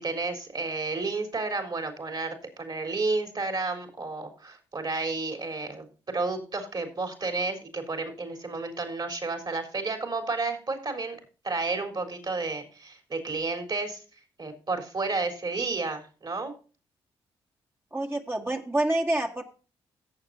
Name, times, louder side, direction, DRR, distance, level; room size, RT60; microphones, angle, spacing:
voice 1, 0.0-11.2 11.4-14.0 14.4-16.5, right 3 dB, 40° right, 5 dB, 3.8 m, -31 dB
voice 2, 17.9-19.4, right 1 dB, 20° right, 2 dB, 1.9 m, -27 dB
17.0 x 7.3 x 2.7 m, 0.36 s
supercardioid pair, 50°, 11 cm